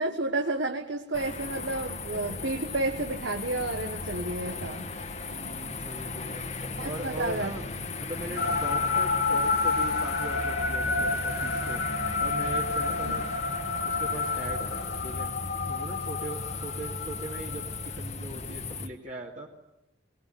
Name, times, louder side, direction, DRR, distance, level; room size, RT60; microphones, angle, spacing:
voice 1, 0.0-4.9 6.8-7.5 13.0-13.1, right 2 dB, 70° right, 5 dB, 1.5 m, -31 dB
sound 1, 1.1-18.9, left 3 dB, 35° left, 1.6 m, -36 dB
voice 2, 5.3-6.4 6.8-7.7 8.0-11.8 12.2-13.3 13.8-14.6 15.0-15.3 15.7-19.5, right 1 dB, 40° right, -2 dB, 2.5 m, -40 dB
sound 2, 8.4-17.8, left 4 dB, 55° left, 1.6 m, -30 dB
23.0 x 20.0 x 9.4 m, 0.92 s
head